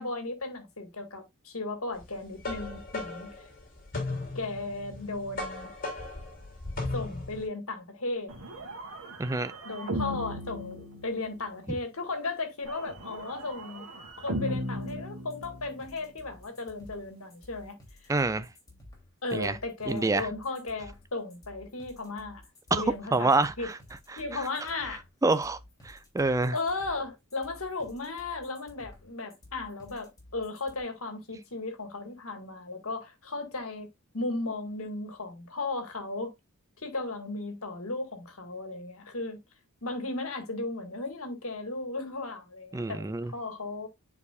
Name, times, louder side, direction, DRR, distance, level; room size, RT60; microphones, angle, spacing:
voice 1, 0.0-3.4 4.4-5.7 6.9-8.3 9.6-13.9 14.2-18.1 19.2-22.4 22.7-23.7 24.2-25.0 26.5-33.9 34.1-36.3 36.8-39.4 39.8-43.9, left 3 dB, 75° left, 1.9 m, -35 dB
sound 1, 2.0-7.5, left 2 dB, 40° left, 2.9 m, -36 dB
sound 2, 8.3-11.5 12.7-15.9, equal, 75° right, 2.0 m, -37 dB
voice 2, 9.2-9.5 18.1-18.5 19.3-19.6 19.9-20.3 22.7-22.8 23.1-23.8 24.1-24.2 25.2-25.6 25.8-26.6 42.7-43.3, right 3 dB, 15° right, 0.3 m, -26 dB
sound 3, 14.8-30.8, left 1 dB, 15° left, 2.9 m, -53 dB
9.6 x 4.8 x 2.4 m
head